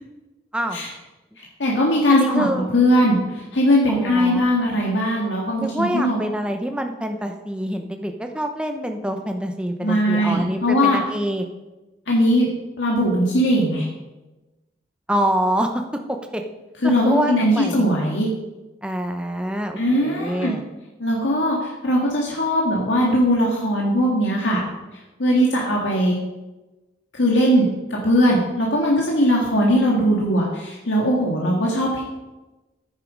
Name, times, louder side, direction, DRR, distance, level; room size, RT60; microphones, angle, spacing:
voice 1, 1.4-6.2 9.8-11.0 12.1-12.5 12.8-13.9 16.8-18.3 19.8-20.5 21.0-24.6 25.2-26.2 27.1-32.0, equal, 85° left, -2 dB, 1.9 m, -20 dB
voice 2, 2.1-2.7 3.9-4.4 5.6-11.4 15.1-15.8 16.3-16.4 16.8-17.8 18.8-20.6, right 1 dB, 5° right, 5 dB, 0.8 m, -26 dB
10.0 x 9.3 x 5.2 m, 1.1 s
head